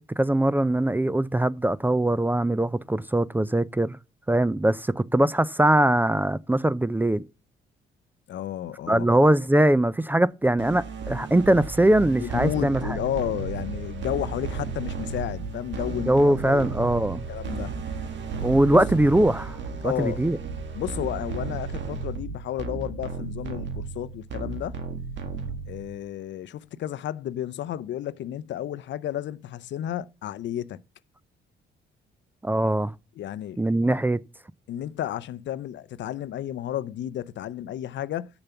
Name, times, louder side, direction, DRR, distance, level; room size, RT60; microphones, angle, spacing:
voice 1, 0.0-4.0 4.3-7.2 8.9-12.8 15.9-17.2 18.4-19.6 19.8-20.4 32.4-32.9 33.6-34.2, right 1 dB, 10° right, 0.4 m, -21 dB
voice 2, 8.3-9.1 12.2-16.1 16.4-16.7 17.3-17.7 18.7-18.8 19.8-20.2 20.7-24.8 25.7-30.8 33.2-33.6 34.7-38.3, left 11 dB, 65° left, 0.6 m, -32 dB
sound 1, 10.6-26.0, right 4 dB, 65° right, 2.0 m, -34 dB
7.0 x 6.8 x 7.0 m
cardioid pair, 90°, 20 cm